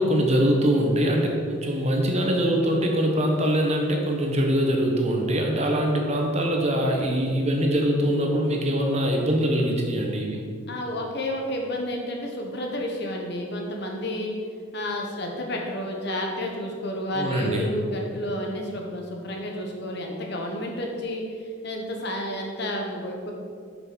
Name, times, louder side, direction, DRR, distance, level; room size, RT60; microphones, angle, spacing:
voice 1, 0.0-10.4 17.1-17.7, equal, 30° right, 1 dB, 1.2 m, -23 dB
voice 2, 10.7-14.3 14.7-23.3, left 1 dB, 50° left, 1 dB, 1.5 m, -31 dB
8.8 x 5.9 x 6.2 m, 2.2 s
head